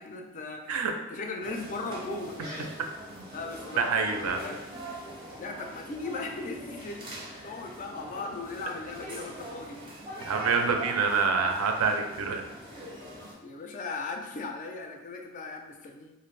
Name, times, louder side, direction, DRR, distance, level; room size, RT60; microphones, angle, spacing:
voice 1, 0.0-0.7 1.1-2.7 3.3-4.6 5.4-7.1 7.4-9.8 13.4-16.1, left 3 dB, 35° left, 3 dB, 0.3 m, -38 dB
sound 1, 1.4-13.3, right 1 dB, 20° right, 0.5 m, -42 dB
voice 2, 3.8-4.4 10.2-12.4, right 5 dB, 75° right, 4 dB, 0.4 m, -26 dB
2.5 x 2.4 x 3.2 m, 1.0 s
head